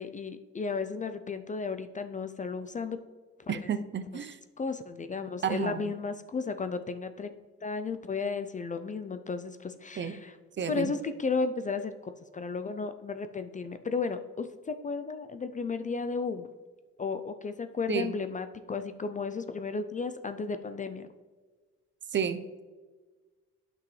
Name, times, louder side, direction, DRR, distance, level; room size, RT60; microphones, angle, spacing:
voice 1, 0.0-3.0 3.4-3.7 4.6-10.4 10.7-16.5 17.0-21.1, left 4 dB, 25° left, 10 dB, 0.4 m, -34 dB
voice 2, 3.5-4.4 5.4-5.9 10.0-10.2 10.6-10.9 17.9-18.2 22.1-22.6, right 7 dB, 40° right, 11 dB, 0.5 m, -31 dB
9.4 x 6.1 x 3.2 m, 1.4 s
cardioid pair, 90°, 30 cm